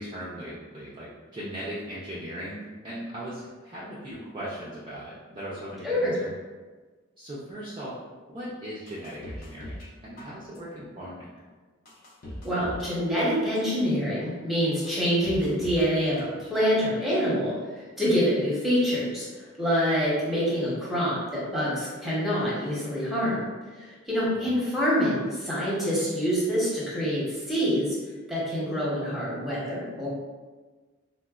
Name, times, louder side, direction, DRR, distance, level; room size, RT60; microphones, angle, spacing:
voice 1, 0.0-6.3 7.2-8.0 8.3-11.3 24.3-24.6, equal, 20° right, -9 dB, 0.4 m, -38 dB
voice 2, 5.8-6.2 12.4-17.5 18.0-19.3 19.6-23.4 23.7-28.0 28.3-30.1, equal, ahead, -8 dB, 0.7 m, -26 dB
sound 1, 8.9-9.9 10.2-10.8 11.3-11.4 11.9-12.9 13.2-13.8 14.3-14.4 14.9-15.9 16.2-16.8 17.1-17.2, left 1 dB, 45° left, 0.5 m, -41 dB
3.8 x 2.1 x 2.3 m, 1.4 s
head